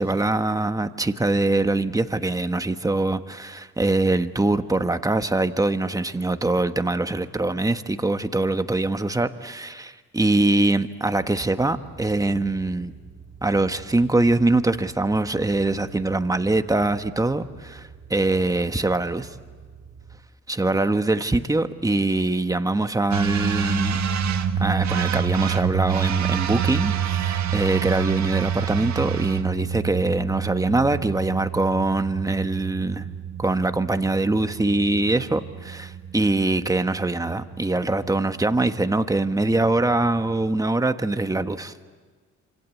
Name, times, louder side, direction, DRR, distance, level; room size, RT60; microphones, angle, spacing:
voice 1, 0.0-12.9 13.4-19.3 20.5-24.0 24.6-33.1 33.4-41.7, right 2 dB, 10° right, 1.3 m, -23 dB
sound 1, 11.2-20.2, right 6 dB, 45° right, 2.6 m, -46 dB
sound 2, 23.1-40.6, right 8 dB, 65° right, 1.6 m, -28 dB
26.5 x 26.5 x 8.4 m
cardioid pair, 90°, 30 cm